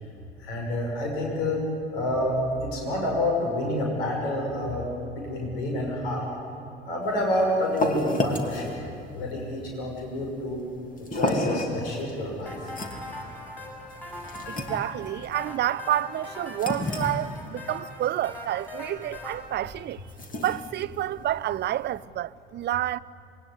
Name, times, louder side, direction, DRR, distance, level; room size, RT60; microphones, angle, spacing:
voice 1, 0.4-1.6 1.9-4.9 5.2-6.3 6.8-8.8 9.1-10.7 11.1-12.7, left 1 dB, 70° left, 6.1 m, -28 dB
sound 1, 7.0-22.0, left 1 dB, 25° left, 3.2 m, -34 dB
sound 2, 12.5-19.4, left 1 dB, 5° left, 6.8 m, -40 dB
voice 2, 14.5-20.0 20.4-23.0, right 12 dB, 35° right, 0.7 m, -29 dB
26.5 x 22.0 x 9.7 m
figure-of-eight pair, 60°, 30 cm